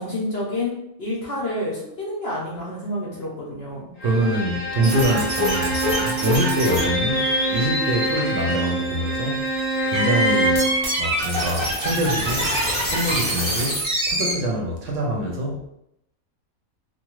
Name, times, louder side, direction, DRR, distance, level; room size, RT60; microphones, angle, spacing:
voice 1, 0.0-3.9, left 1 dB, 60° left, -4 dB, 0.7 m, -29 dB
Bowed string instrument, 4.0-10.8, right 1 dB, 85° left, 0.3 m, -26 dB
voice 2, 4.0-9.5 9.8-10.6 11.0-12.5 12.9-15.7, right 1 dB, 70° right, 0 dB, 0.9 m, -25 dB
sound 1, 4.8-14.3, equal, 25° right, 0.7 m, -25 dB
2.9 x 2.1 x 2.9 m, 0.80 s
omnidirectional pair, 1.5 m